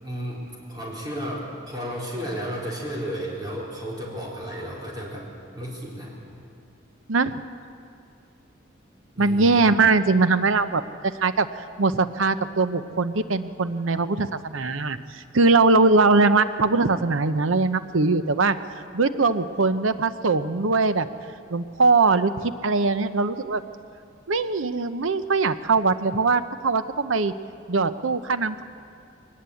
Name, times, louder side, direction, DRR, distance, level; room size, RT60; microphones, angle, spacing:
voice 1, 0.0-5.3 5.5-6.1 9.1-9.6, equal, 20° right, -4 dB, 4.4 m, -33 dB
voice 2, 7.1-7.4 9.2-10.8 11.2-18.6 18.9-21.1 21.5-23.6 24.3-27.3 27.7-28.6, right 3 dB, 85° right, 12 dB, 0.8 m, -21 dB
22.5 x 19.5 x 8.4 m, 2.4 s
head